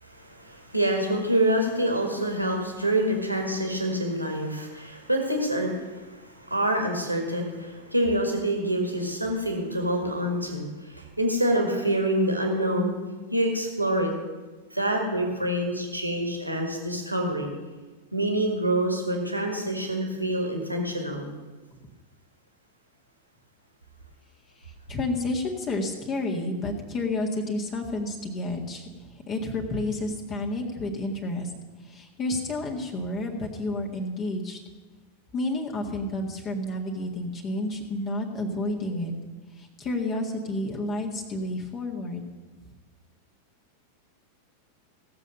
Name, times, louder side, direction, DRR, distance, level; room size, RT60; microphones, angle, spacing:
voice 1, 0.0-13.0 13.3-14.1 14.7-17.5 18.1-21.3, right 1 dB, 85° right, 2 dB, 1.9 m, -26 dB
voice 2, 24.6-31.5 31.8-34.6 35.3-39.2 39.5-42.3, left 2 dB, 30° left, 0 dB, 1.8 m, -30 dB
17.0 x 6.8 x 6.6 m, 1.3 s
figure-of-eight pair, 90°, 0 cm